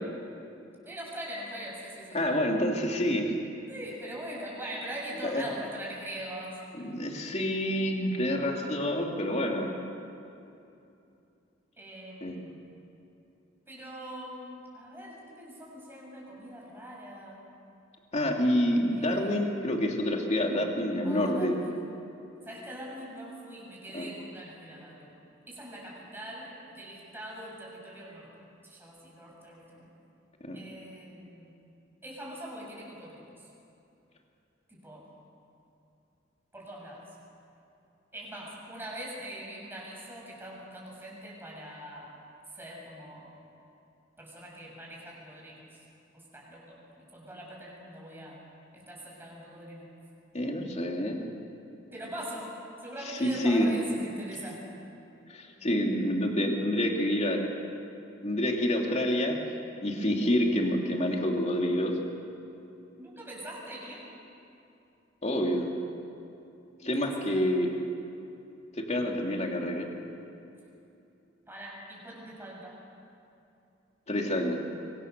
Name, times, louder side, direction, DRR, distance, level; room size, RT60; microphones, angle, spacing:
voice 1, 0.8-2.2 3.7-6.6 11.8-12.6 13.7-17.4 18.8-19.4 21.0-21.8 22.4-25.2 25.5-28.3 28.6-29.9 30.5-31.6 32.0-33.3 34.7-35.1 36.5-37.1 38.1-42.2 42.5-43.3 44.2-45.8 46.1-48.5 48.7-49.9 51.9-54.7 63.0-64.1 66.8-67.6 71.5-72.8, right 1 dB, 10° right, -3 dB, 6.7 m, -42 dB
voice 2, 2.1-3.3 5.2-5.4 6.8-9.7 12.2-12.4 18.1-21.5 23.9-24.1 30.4-30.6 50.3-51.2 53.2-53.7 55.3-57.4 58.2-59.4 59.8-61.9 65.2-65.7 66.8-67.7 68.8-69.9 74.1-74.6, left 1 dB, 35° left, 1 dB, 2.7 m, -27 dB
25.0 x 24.0 x 6.7 m, 2.7 s
head